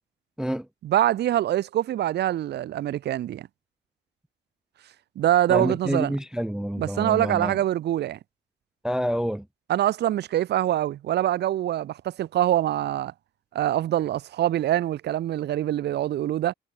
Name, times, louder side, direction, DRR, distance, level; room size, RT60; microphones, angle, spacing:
voice 1, 0.8-3.5 5.2-6.2 6.8-8.2 9.7-13.1 13.5-16.5, right 12 dB, 60° right, 0.5 m, -24 dB
voice 2, 5.5-7.6 8.8-9.5, equal, 5° right, 0.4 m, -28 dB
cardioid pair, 90°, 20 cm